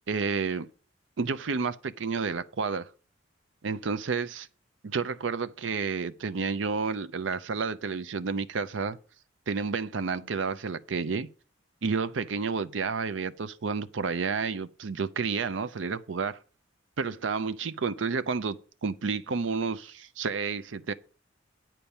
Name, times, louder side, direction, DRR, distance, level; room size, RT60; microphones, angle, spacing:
voice 1, 0.1-0.7 1.2-2.9 3.6-4.5 4.8-9.0 9.5-11.3 11.8-16.4 17.0-20.9, right 5 dB, 70° right, 0.6 m, -30 dB
10.0 x 4.6 x 7.0 m
head